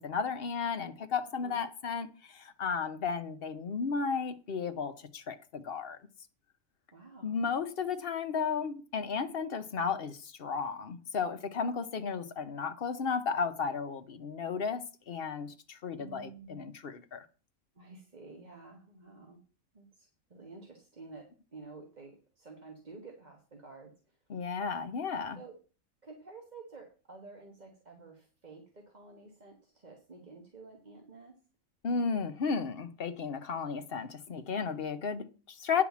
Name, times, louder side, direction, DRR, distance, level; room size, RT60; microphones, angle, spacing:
voice 1, 0.0-6.0 7.2-17.2 24.3-25.4 31.8-35.8, left 5 dB, 50° left, 0.9 m, -34 dB
voice 2, 6.9-7.4 16.0-16.6 17.7-19.4 19.7-23.9 25.3-25.5 26.0-31.3, right 3 dB, 30° right, 1.5 m, -51 dB
9.9 x 4.9 x 7.2 m
omnidirectional pair, 1.4 m